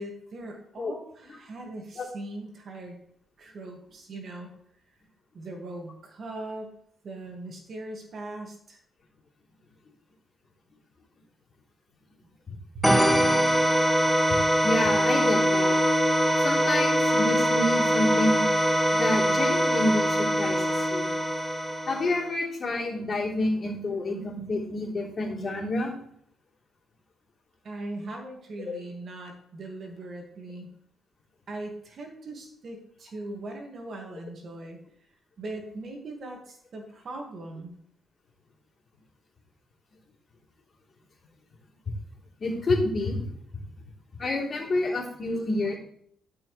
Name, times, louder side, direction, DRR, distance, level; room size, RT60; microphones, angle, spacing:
voice 1, 0.0-3.0 3.4-4.5 5.3-6.7 7.0-8.8 27.6-30.7 31.5-34.8 35.4-37.7, right 2 dB, 50° right, 2 dB, 1.9 m, -40 dB
sound 1, 12.8-22.3, equal, 5° right, 0.7 m, -23 dB
voice 2, 14.6-15.8 16.4-18.4 18.9-21.1 21.9-25.9 28.6-28.7 42.4-43.2 44.2-45.8, left 2 dB, 40° left, -4 dB, 3.5 m, -28 dB
11.5 x 5.8 x 3.3 m, 0.67 s
cardioid pair, 90°, 0 cm